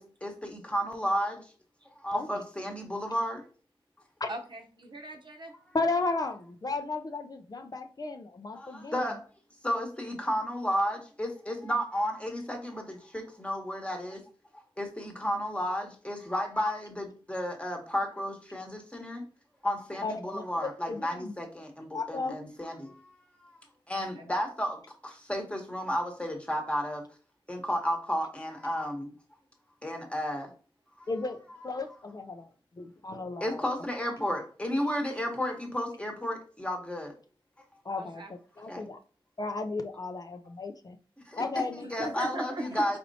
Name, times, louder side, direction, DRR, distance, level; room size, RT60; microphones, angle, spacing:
voice 1, 0.0-1.5 2.0-3.4 8.5-9.2 9.6-14.2 14.8-19.2 19.6-23.1 23.4-23.5 23.9-27.0 27.5-29.1 29.8-30.5 31.0-31.1 31.6-31.7 33.4-37.1 38.7-38.8 41.3-43.0, equal, 10° left, 2 dB, 1.1 m, -33 dB
voice 2, 4.3-5.5 23.9-24.2 38.0-38.3 41.4-41.5 41.8-43.0, right 2 dB, 55° right, 4 dB, 0.8 m, -40 dB
voice 3, 5.7-9.0 20.0-21.3 21.9-22.3 31.1-31.4 31.6-32.5 32.8-33.6 37.9-38.2 38.6-39.0 39.4-41.0 41.4-42.1, left 3 dB, 45° left, 6 dB, 0.4 m, -34 dB
4.2 x 4.2 x 2.7 m, 0.38 s
wide cardioid pair, 100°, 9 cm